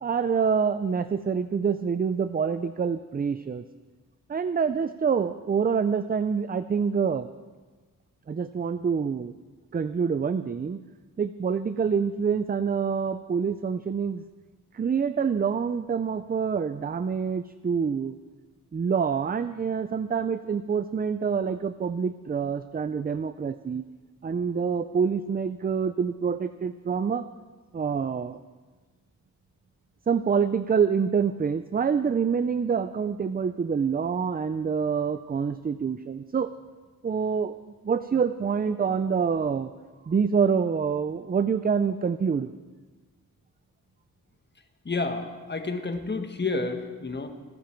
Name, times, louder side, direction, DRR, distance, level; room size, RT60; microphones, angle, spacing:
voice 1, 0.0-3.6 4.3-7.3 8.3-9.3 9.7-10.8 11.2-14.2 14.7-18.2 18.7-23.9 24.2-27.3 27.7-28.4 30.1-36.5 37.0-37.5 37.8-39.7 40.1-42.5, right 6 dB, 25° right, 12 dB, 0.4 m, -26 dB
voice 2, 44.8-47.3, left 3 dB, 30° left, 6 dB, 1.4 m, -30 dB
27.0 x 10.5 x 4.5 m, 1.3 s
wide cardioid pair, 120°, 35 cm